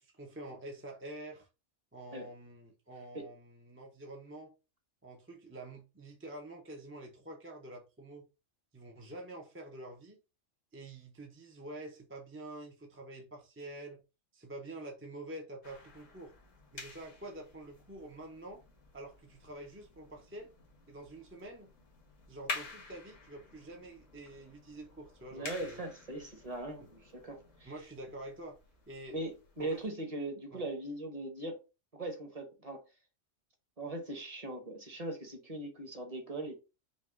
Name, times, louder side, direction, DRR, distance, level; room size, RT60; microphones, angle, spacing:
voice 1, 0.0-1.5 1.9-4.5 5.0-8.3 8.7-10.2 10.7-14.0 14.3-16.3 16.7-18.6 18.9-20.5 20.9-21.7 22.3-25.8 26.8-26.9 27.6-28.6 28.9-29.2 29.6-29.8 30.5-30.7, right 1 dB, 15° right, 0.5 m, -47 dB
sound 1, 15.6-29.8, left 3 dB, 80° left, 1.7 m, -49 dB
voice 2, 25.3-27.7 29.1-31.6 31.9-32.8 33.8-36.6, right 2 dB, 30° right, 1.0 m, -40 dB
5.3 x 2.3 x 3.6 m
omnidirectional pair, 1.3 m